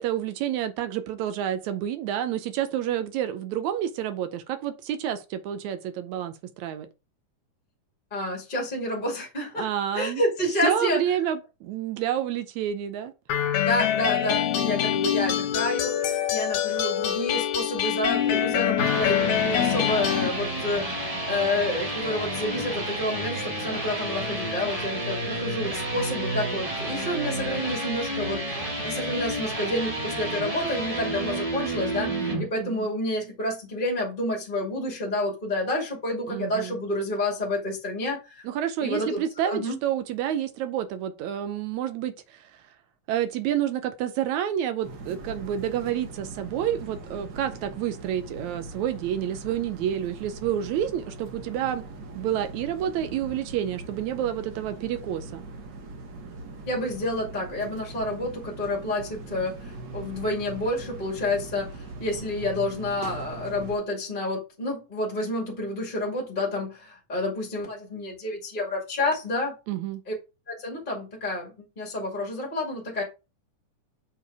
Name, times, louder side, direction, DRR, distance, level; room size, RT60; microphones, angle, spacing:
voice 1, 0.0-6.9 9.6-10.2 10.6-13.1 32.1-32.9 36.3-36.8 38.4-42.5 43.1-51.8 52.2-55.4 69.7-70.0, right 10 dB, 75° right, 1.9 m, -29 dB
voice 2, 8.1-9.7 9.9-11.0 13.6-38.4 38.8-39.8 56.7-69.5 70.1-70.2 70.5-73.0, left 1 dB, 20° left, 1.9 m, -29 dB
sound 1, 13.3-20.3, left 10 dB, 75° left, 2.0 m, -25 dB
sound 2, 18.5-32.4, right 1 dB, 20° right, 1.0 m, -30 dB
sound 3, 44.8-63.8, right 2 dB, 50° right, 1.4 m, -41 dB
6.8 x 4.6 x 4.7 m
omnidirectional pair, 3.5 m